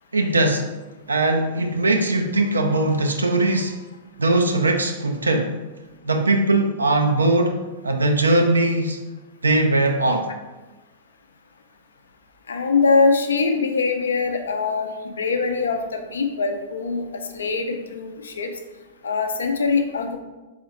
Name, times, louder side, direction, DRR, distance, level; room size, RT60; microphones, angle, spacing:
voice 1, 0.1-0.7 1.1-3.8 4.2-5.6 6.0-9.0 9.4-10.3, right 2 dB, 80° right, 4 dB, 0.4 m, -20 dB
voice 2, 12.5-18.5 19.0-20.2, left 4 dB, 70° left, 6 dB, 0.5 m, -23 dB
4.0 x 3.8 x 2.9 m, 1.2 s
figure-of-eight pair, 100°, 0 cm